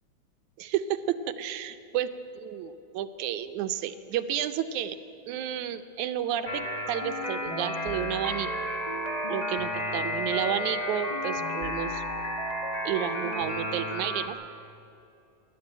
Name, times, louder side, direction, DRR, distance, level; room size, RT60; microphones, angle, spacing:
voice 1, 0.6-5.0 5.3-6.6 6.9-8.5 9.3-12.0 12.9-14.4, right 10 dB, 75° right, 10 dB, 2.1 m, -31 dB
sound 1, 6.4-14.3, left 1 dB, 60° left, 0.4 m, -32 dB
26.0 x 11.5 x 8.8 m, 2.8 s
omnidirectional pair, 3.6 m